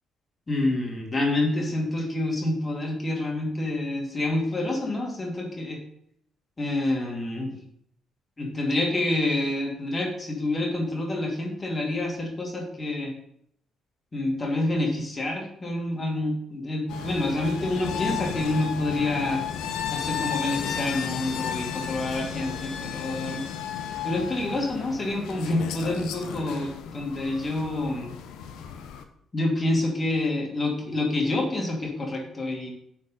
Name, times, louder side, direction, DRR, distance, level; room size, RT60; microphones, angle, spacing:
voice 1, 0.5-5.8 6.6-7.5 8.4-13.1 14.1-19.4 19.9-23.4 24.0-28.1 29.3-32.7, left 2 dB, 30° left, 0 dB, 2.7 m, -27 dB
sound 1, 16.9-29.0, left 8 dB, 70° left, 0.7 m, -33 dB
9.3 x 4.9 x 5.5 m, 0.70 s
hypercardioid pair, 45°, 0 cm